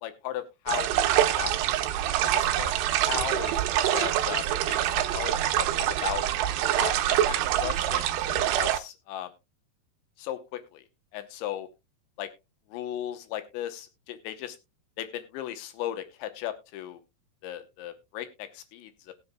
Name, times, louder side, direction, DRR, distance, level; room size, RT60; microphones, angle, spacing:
voice 1, 0.0-1.0 1.4-1.5 2.2-2.7 3.1-3.6 3.9-4.9 5.1-5.7 6.0-6.2 6.7-9.3 10.2-10.8 11.1-11.7 12.2-12.3 12.7-14.6 15.0-17.0 17.4-19.1, left 12 dB, 85° left, 10 dB, 3.3 m, -36 dB
sound 1, 0.7-8.8, right 12 dB, 75° right, 2.7 m, -25 dB
20.0 x 7.2 x 2.2 m, 0.25 s
omnidirectional pair, 5.1 m